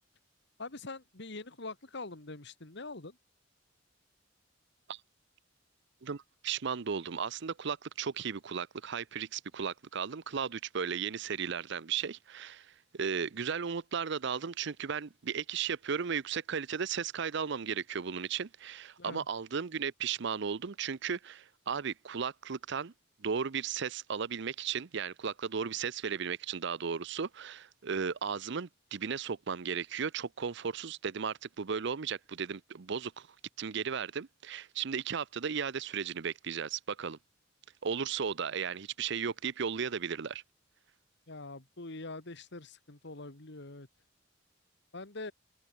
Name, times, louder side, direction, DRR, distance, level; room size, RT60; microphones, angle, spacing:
voice 1, 0.6-3.2 19.0-19.3 41.3-43.9 44.9-45.3, left 3 dB, 65° left, 2.1 m, -44 dB
voice 2, 6.0-22.9 23.2-33.3 33.6-37.2 37.8-40.4, right 6 dB, 65° right, 0.6 m, -35 dB
head